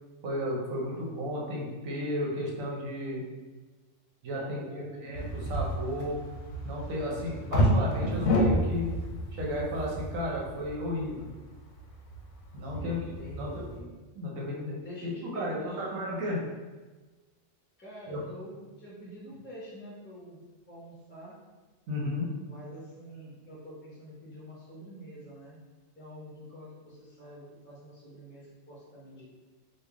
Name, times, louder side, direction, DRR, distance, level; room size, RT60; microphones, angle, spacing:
voice 1, 0.2-3.2 4.2-5.2 5.5-6.2 6.6-8.9 9.3-11.3 12.5-13.0 13.4-13.6 14.1-14.8 15.0-16.4 18.1-18.2 21.9-22.3, left 1 dB, 80° right, -3 dB, 1.2 m, -33 dB
voice 2, 4.3-5.0 7.0-8.0 12.7-13.9 14.8-15.9 17.8-20.4 20.7-21.4 22.4-25.6 26.0-29.3, equal, 15° left, -6 dB, 0.5 m, -46 dB
sound 1, 5.1-13.8, equal, 65° left, 0.8 m, -30 dB
3.3 x 2.4 x 3.4 m, 1.3 s
omnidirectional pair, 1.4 m